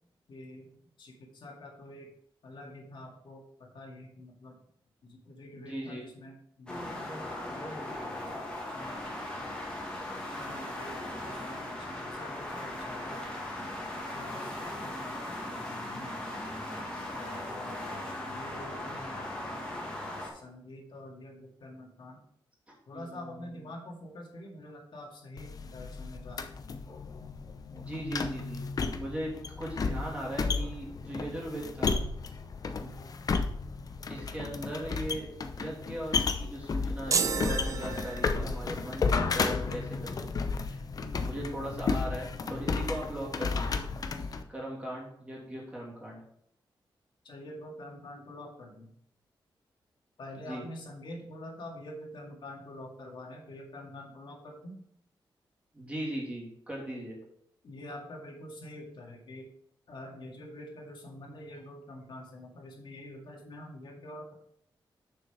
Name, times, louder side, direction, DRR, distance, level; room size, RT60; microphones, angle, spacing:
voice 1, 0.3-0.7 1.0-2.1 2.4-4.6 5.0-9.6 10.1-13.3 14.1-15.2 15.9-16.2 17.1-19.7 20.2-22.2 22.9-26.7 32.7-33.2 40.9-41.8 47.2-48.9 50.2-54.8 57.6-59.5 59.9-64.3, left 1 dB, 65° left, -1 dB, 2.1 m, -46 dB
voice 2, 5.5-6.0 22.9-23.5 27.7-28.7 29.0-29.3 29.6-32.0 34.1-40.4 40.7-40.8 41.2-43.8 44.5-46.2 50.5-50.6 55.7-57.2, right 1 dB, 15° right, -4 dB, 2.8 m, -38 dB
sound 1, 6.7-20.3, left 1 dB, 10° left, 2.0 m, -38 dB
sound 2, 25.4-44.4, left 4 dB, 45° left, 0.7 m, -33 dB
sound 3, 37.1-38.7, right 5 dB, 40° right, 0.5 m, -31 dB
7.0 x 6.6 x 4.8 m, 0.69 s
wide cardioid pair, 155°, 9 cm